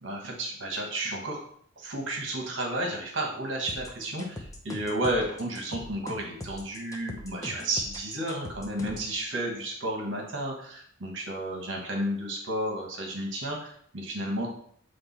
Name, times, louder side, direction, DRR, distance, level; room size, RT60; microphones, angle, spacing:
voice 1, 0.0-1.4 1.8-14.5, right 1 dB, 65° right, 0 dB, 1.3 m, -32 dB
sound 1, 3.7-9.1, left 1 dB, 15° left, 0.8 m, -41 dB
7.9 x 3.4 x 4.1 m, 0.62 s
head